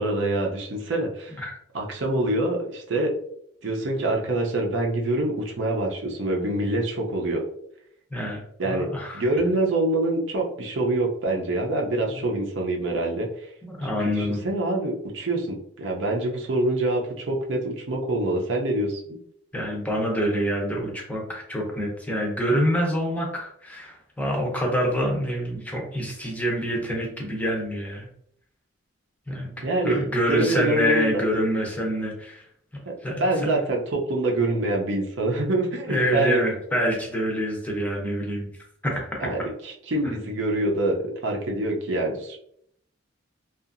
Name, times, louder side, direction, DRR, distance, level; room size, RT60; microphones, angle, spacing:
voice 1, 0.0-1.4 1.7-3.2 3.6-7.4 8.6-8.9 9.1-13.5 13.8-19.0 29.6-31.2 32.8-36.4 39.2-42.4, right 2 dB, 65° right, 0 dB, 0.6 m, -25 dB
voice 2, 8.1-9.2 12.2-12.3 13.6-14.4 19.5-28.1 29.3-29.5 29.8-32.5 33.0-33.5 35.9-38.5 38.8-39.3, equal, 10° left, -1 dB, 0.6 m, -26 dB
2.7 x 2.4 x 2.4 m, 0.70 s
head